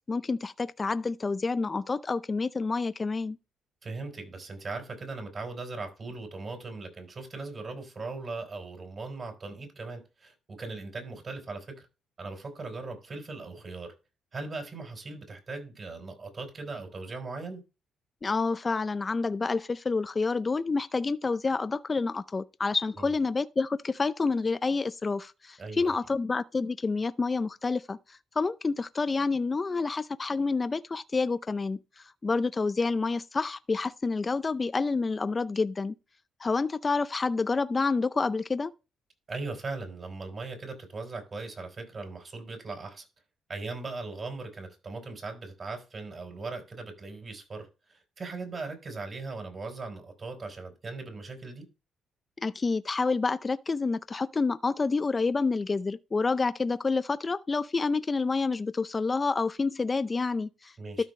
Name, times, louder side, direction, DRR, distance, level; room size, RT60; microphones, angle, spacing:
voice 1, 0.0-3.4 18.2-28.0 28.4-31.8 32.2-35.9 36.4-38.7 52.4-60.7 61.0-61.1, left 4 dB, 30° left, 0.5 m, -28 dB
voice 2, 3.8-11.9 12.2-13.9 14.3-17.6 23.0-23.1 25.6-26.0 39.3-43.0 43.5-51.7 60.8-61.0, right 3 dB, 40° right, 4.2 m, -39 dB
13.0 x 5.0 x 3.2 m
cardioid pair, 90°, 0 cm